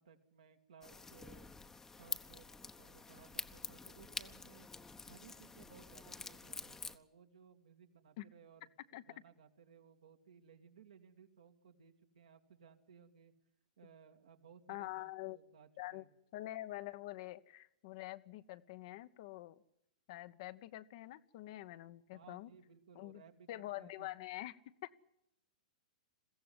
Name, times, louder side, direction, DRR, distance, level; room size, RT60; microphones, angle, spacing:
voice 1, 0.0-1.5 2.0-4.7 5.1-13.3 13.8-16.1 22.1-24.1, right 7 dB, 70° right, 5 dB, 2.4 m, -61 dB
sound 1, 0.8-7.0, left 4 dB, 10° left, 1.1 m, -47 dB
voice 2, 14.7-15.4 15.8-16.0 16.3-19.6 20.1-22.5 22.9-23.2 23.5-25.0, left 16 dB, 50° left, 12 dB, 1.0 m, -46 dB
22.0 x 15.5 x 9.7 m, 0.81 s
figure-of-eight pair, 105°, 4 cm